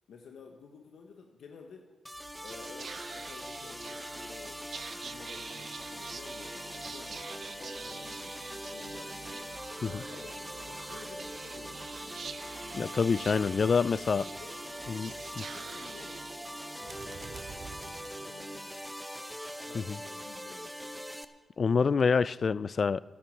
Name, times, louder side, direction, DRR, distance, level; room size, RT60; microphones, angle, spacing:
voice 1, 0.1-1.9 2.4-4.6 4.9-8.4 8.7-9.5 9.8-12.4 14.1-14.6 15.4-16.3 16.7-17.4 17.8-18.9 19.6-21.0, left 5 dB, 75° left, 2 dB, 1.2 m, -52 dB
sound 1, 2.1-21.3, equal, ahead, 1.0 m, -42 dB
Whispering, 2.1-18.7, right 6 dB, 65° right, 0.5 m, -47 dB
sound 2, 4.8-12.4, right 5 dB, 80° right, 1.4 m, -61 dB
voice 2, 12.7-14.3 14.9-15.4 19.7-20.0 21.6-23.0, left 5 dB, 55° left, 19 dB, 0.4 m, -27 dB
10.5 x 10.5 x 7.7 m, 1.3 s
supercardioid pair, 45°, 0 cm